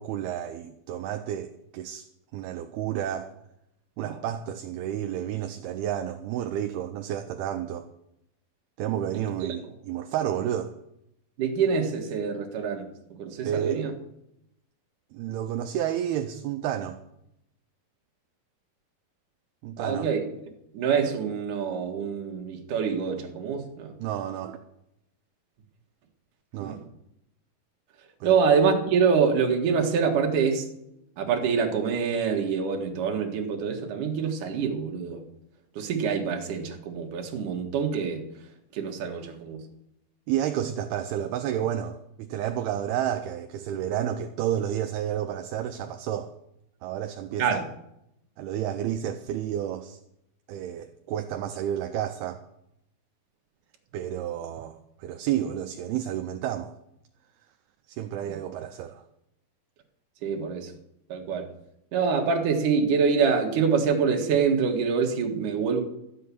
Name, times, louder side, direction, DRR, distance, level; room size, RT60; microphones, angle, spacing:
voice 1, 0.0-2.1 2.3-3.3 4.0-7.9 8.8-10.7 13.4-13.8 15.1-17.0 19.6-20.1 24.0-24.6 26.5-26.8 28.2-28.4 40.3-46.3 46.8-47.6 48.4-50.0 50.5-52.4 53.9-56.7 57.9-59.0, right 10 dB, 80° right, 6 dB, 2.5 m, -31 dB
voice 2, 11.4-12.9 13.2-13.9 19.8-20.2 20.7-23.9 26.6-26.8 28.2-30.6 31.2-35.2 35.8-38.2 38.7-39.6 47.4-47.6 58.2-58.4 60.2-60.7 61.1-61.5 61.9-65.8, right 6 dB, 55° right, 2 dB, 2.8 m, -25 dB
13.0 x 7.8 x 8.4 m, 0.81 s
omnidirectional pair, 4.9 m